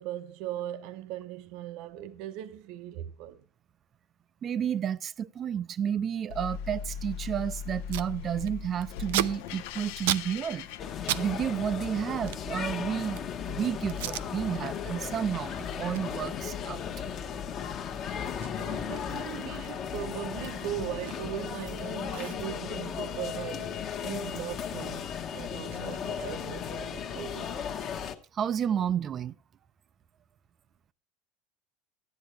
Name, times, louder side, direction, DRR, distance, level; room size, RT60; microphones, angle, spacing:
voice 1, 0.0-3.4 17.9-18.0 18.6-27.5, right 12 dB, 55° right, 0.8 m, -39 dB
voice 2, 4.4-10.7 11.1-13.2 13.5-16.8 28.3-29.3, right 9 dB, 25° right, 0.5 m, -31 dB
sound 1, 6.3-11.6, left 7 dB, 65° left, 0.8 m, -39 dB
Packing tape duct tape, 7.4-7.5 7.6-8.1 8.4-11.3 11.5-13.4 13.9-14.3 14.7-15.0 15.3-21.5 21.8-21.9 22.1-24.5 24.8-26.7, right 14 dB, 90° right, 0.6 m, -38 dB
sound 2, 10.8-28.1, left 7 dB, 30° left, 1.1 m, -36 dB
15.0 x 10.5 x 3.2 m
cardioid pair, 165°, 0 cm